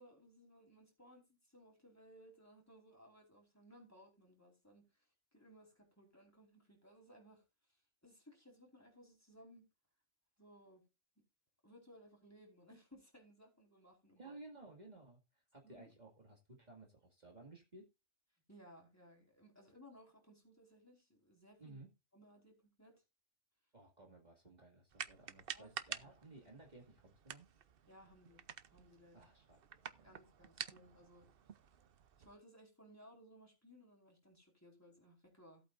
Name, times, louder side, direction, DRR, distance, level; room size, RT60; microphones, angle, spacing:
voice 1, 0.0-9.7 10.4-10.8 11.6-14.4 15.6-15.9 18.5-21.8 22.1-23.0 25.5-25.7 26.0-26.1 27.9-28.4 28.7-29.3 30.0-31.3 32.2-35.6, equal, 15° left, 4.5 m, -62 dB
voice 2, 14.1-17.8 21.6-21.9 23.7-27.5 29.1-29.6 29.9-30.2, right 2 dB, 40° right, 2.3 m, -57 dB
sound 1, 24.9-32.3, right 8 dB, 55° right, 0.9 m, -50 dB
17.0 x 8.4 x 2.6 m
omnidirectional pair, 1.2 m